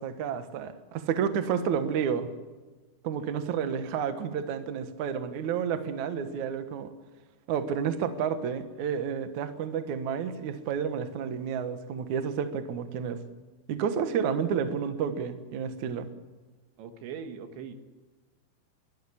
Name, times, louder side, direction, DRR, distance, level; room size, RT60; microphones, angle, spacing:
voice 1, 0.0-2.3 3.0-6.9 7.5-13.2 13.7-16.1, right 7 dB, 65° right, 8 dB, 2.0 m, -30 dB
voice 2, 16.8-17.7, right 7 dB, 80° right, 7 dB, 3.8 m, -41 dB
22.0 x 13.5 x 10.0 m, 1.3 s
omnidirectional pair, 5.2 m